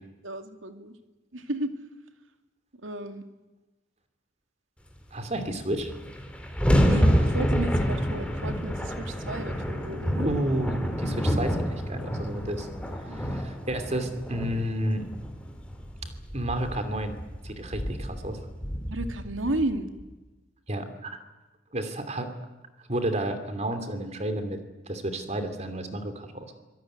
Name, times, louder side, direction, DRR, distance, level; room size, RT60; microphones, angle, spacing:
voice 1, 0.2-0.9 1.3-1.7 2.8-3.2 6.8-10.3 13.1-13.4 18.9-19.9, right 1 dB, 80° right, 7 dB, 2.4 m, -33 dB
voice 2, 5.1-5.9 10.2-12.7 13.2-15.0 16.3-17.2 17.4-18.4 20.7-21.2 21.7-22.3 22.9-24.6 24.9-26.5, right 1 dB, 35° right, 8 dB, 2.9 m, -31 dB
sound 1, 5.4-5.5 5.7-20.0, equal, 5° left, 3.5 m, -28 dB
25.5 x 18.0 x 9.2 m, 1.1 s
head